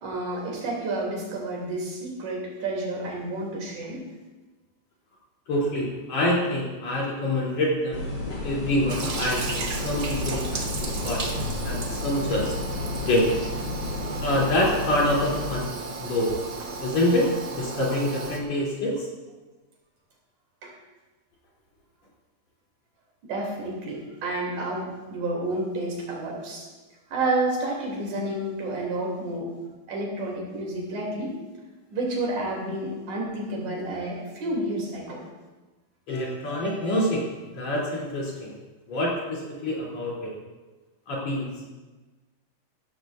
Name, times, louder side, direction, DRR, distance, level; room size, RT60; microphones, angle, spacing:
voice 1, 0.0-4.1 20.6-20.7 23.3-26.7 27.1-29.5 29.9-31.4 31.9-35.2, right 2 dB, 80° right, -2 dB, 4.2 m, -30 dB
voice 2, 5.5-10.5 10.8-11.4 11.6-12.6 13.0-13.3 14.2-15.7 16.0-16.3 16.8-19.1 36.1-37.3 37.5-38.5 38.9-40.3 41.1-41.6, left 1 dB, 65° left, -4 dB, 4.3 m, -26 dB
sound 1, 7.9-15.5, left 2 dB, 40° left, 2.6 m, -32 dB
Toilet flush, 8.9-18.4, right 4 dB, 50° right, 1.3 m, -34 dB
16.0 x 14.0 x 2.5 m, 1.2 s
omnidirectional pair, 3.4 m